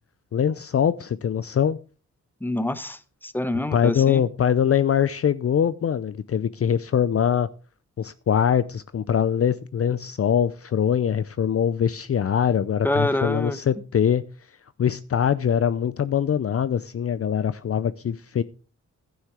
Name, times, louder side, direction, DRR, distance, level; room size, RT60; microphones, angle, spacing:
voice 1, 0.3-1.8 3.7-7.5 8.0-14.2 14.8-18.4, left 8 dB, 45° left, 0.6 m, -23 dB
voice 2, 2.4-4.3 12.8-13.6, left 1 dB, 5° left, 1.1 m, -26 dB
11.5 x 9.6 x 4.8 m
cardioid pair, 65°, 32 cm